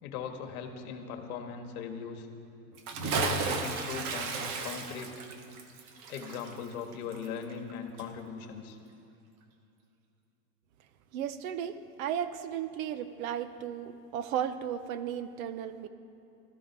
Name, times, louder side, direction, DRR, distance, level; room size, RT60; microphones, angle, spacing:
voice 1, 0.0-2.3 3.0-5.1 6.1-8.8, left 6 dB, 60° left, 5 dB, 1.7 m, -39 dB
Bathtub (filling or washing) / Splash splatter, 2.7-7.7 8.0-8.1, right 4 dB, 35° right, 1.1 m, -34 dB
voice 2, 11.1-15.9, right 9 dB, 55° right, 12 dB, 0.8 m, -35 dB
16.0 x 13.5 x 4.7 m, 2.7 s
supercardioid pair, 145°, 49 cm